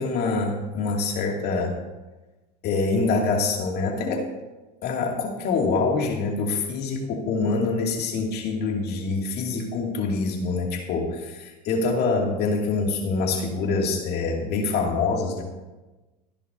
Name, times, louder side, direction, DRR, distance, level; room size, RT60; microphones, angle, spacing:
voice 1, 0.0-1.8 2.6-4.3 4.8-15.4, left 3 dB, 50° left, 1 dB, 2.5 m, -25 dB
16.5 x 10.0 x 2.7 m, 1.1 s
hypercardioid pair, 90°, 21 cm